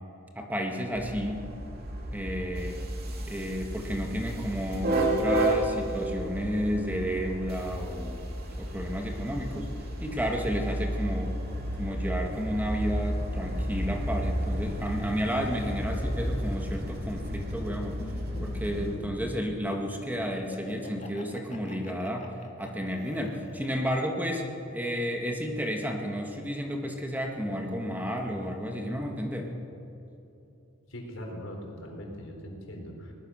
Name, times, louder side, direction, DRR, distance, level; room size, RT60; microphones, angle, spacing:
voice 1, 0.4-1.4 2.1-2.8 3.2-8.2 8.6-9.7 10.0-11.3 11.7-18.0 18.4-24.4 24.7-29.5, equal, 10° right, 2 dB, 1.9 m, -32 dB
sound 1, 0.9-19.0, right 1 dB, 50° right, 2.8 m, -32 dB
Laughter, 18.0-24.0, left 1 dB, 35° left, 2.2 m, -45 dB
voice 2, 30.9-33.1, equal, 85° left, 1 dB, 4.5 m, -40 dB
22.0 x 19.5 x 6.5 m, 2.9 s
head